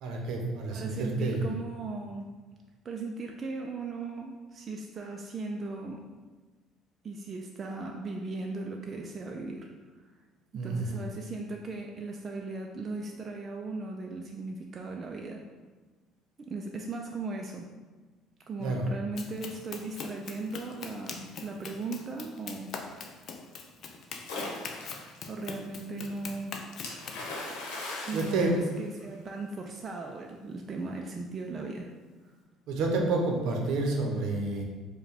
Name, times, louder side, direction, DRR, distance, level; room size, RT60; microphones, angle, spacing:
voice 1, 0.0-1.4 10.5-11.0 18.6-18.8 28.1-28.5 32.7-34.6, right 3 dB, 70° right, 1 dB, 0.7 m, -29 dB
voice 2, 0.7-2.3 2.8-6.0 7.0-9.7 9.9-10.1 10.5-15.4 16.4-17.7 18.5-22.7 25.3-26.6 28.1-31.9 32.2-32.3, right 3 dB, 35° right, 1 dB, 0.3 m, -37 dB
Run, 19.2-27.3, left 5 dB, 55° left, 0.4 m, -43 dB
Splash splatter, 24.2-25.2 26.8-29.3, left 2 dB, 90° left, 0.8 m, -39 dB
4.5 x 2.2 x 3.4 m, 1.3 s
cardioid pair, 100°, 0 cm